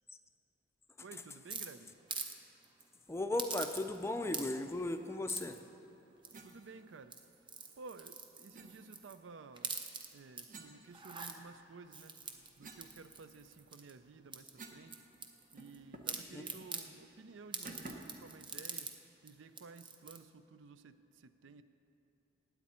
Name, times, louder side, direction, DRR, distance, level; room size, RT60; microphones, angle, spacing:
voice 1, 1.0-1.9 6.4-7.2 7.8-9.8 10.1-12.1 12.6-15.0 15.5-18.9 19.2-21.0 21.2-21.6, right 4 dB, 75° right, 12 dB, 0.5 m, -54 dB
sound 1, 1.5-2.4 2.6-2.8 3.4-4.0 4.3-4.7 5.3-5.6 6.2-6.6 7.0-9.2 9.5-10.4 10.9-11.3 11.9-13.9 14.3-15.8 16.1-16.9 17.5-18.9 19.3-19.4 19.6-20.2, right 5 dB, 25° right, 0.7 m, -44 dB
voice 2, 3.1-5.6 16.3-16.5, left 2 dB, 15° left, 7 dB, 0.5 m, -36 dB
sound 2, 6.3-6.5 8.5-8.7 10.5-11.5 12.0-14.9 15.2-15.3 15.6-16.2 16.6-16.8 17.6-18.2, right 2 dB, 45° right, 1.1 m, -53 dB
18.5 x 8.2 x 4.3 m, 2.8 s
head